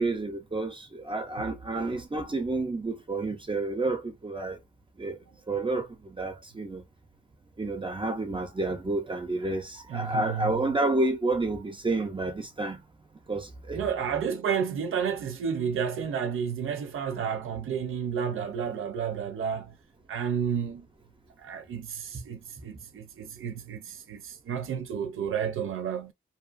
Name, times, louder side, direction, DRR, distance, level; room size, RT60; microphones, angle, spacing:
voice 1, 0.0-4.6 5.0-5.2 5.5-6.8 7.6-12.8 13.3-13.8, right 2 dB, 25° right, 0.5 m, -30 dB
voice 2, 9.9-10.6 13.7-19.7 20.1-20.8 21.4-26.1, right 7 dB, 85° right, 0.4 m, -31 dB
2.6 x 2.3 x 2.4 m
wide cardioid pair, 125°, 21 cm